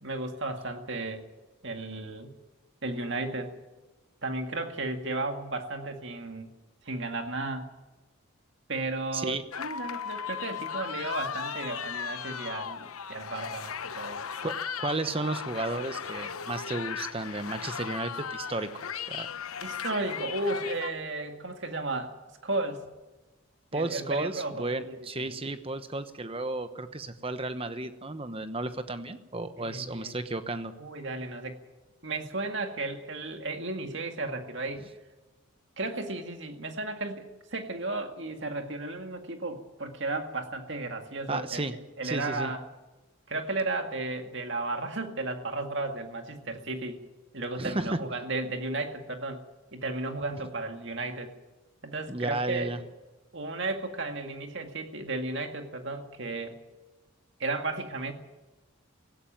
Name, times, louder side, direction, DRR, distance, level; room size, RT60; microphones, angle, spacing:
voice 1, 0.0-1.2 1.6-2.3 2.8-3.5 4.2-6.5 6.8-7.7 8.7-14.2 19.6-22.1 22.4-22.9 23.7-25.4 29.6-30.2 30.8-31.6 32.0-34.9 35.8-41.6 42.0-42.6 43.3-47.0 47.3-49.4 49.7-51.3 51.8-52.7 53.3-56.6 57.4-58.1, right 2 dB, 55° right, 5 dB, 2.1 m, -34 dB
voice 2, 9.1-9.4 14.4-18.7 19.1-19.3 23.7-30.7 41.3-41.7 42.0-42.5 47.6-48.0 52.1-52.8, right 2 dB, 25° right, 10 dB, 1.0 m, -33 dB
sound 1, 9.5-20.9, left 7 dB, 90° left, 0.9 m, -37 dB
18.0 x 16.0 x 9.2 m, 1.1 s
head